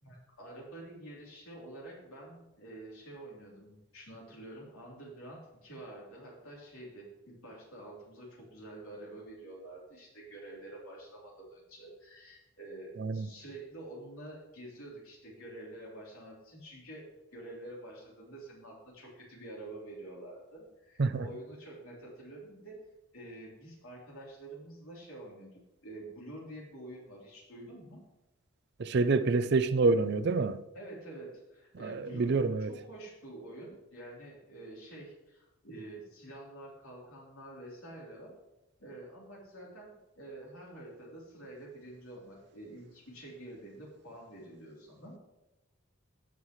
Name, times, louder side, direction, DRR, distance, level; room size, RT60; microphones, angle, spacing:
voice 1, 0.0-17.1 17.3-22.8 23.1-28.0 30.7-38.3 38.8-45.2, right 1 dB, 75° left, 3.5 m, -48 dB
voice 2, 13.0-13.3 21.0-21.2 28.8-30.6 31.8-32.7, right 3 dB, 50° right, 0.4 m, -27 dB
17.0 x 5.7 x 3.1 m
head